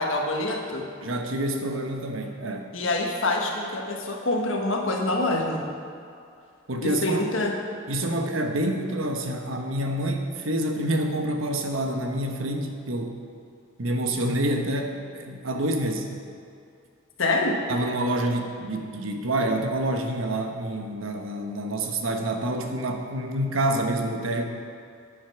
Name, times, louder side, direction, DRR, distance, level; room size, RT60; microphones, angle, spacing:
voice 1, 0.0-0.8 2.7-5.6 6.8-7.6 17.2-17.6, left 2 dB, 75° left, 1 dB, 1.5 m, -26 dB
voice 2, 1.0-2.7 6.7-7.2 7.9-13.2 13.8-16.1 17.7-24.4, right 1 dB, 80° right, 3 dB, 1.2 m, -27 dB
9.4 x 8.6 x 5.8 m, 2.4 s
head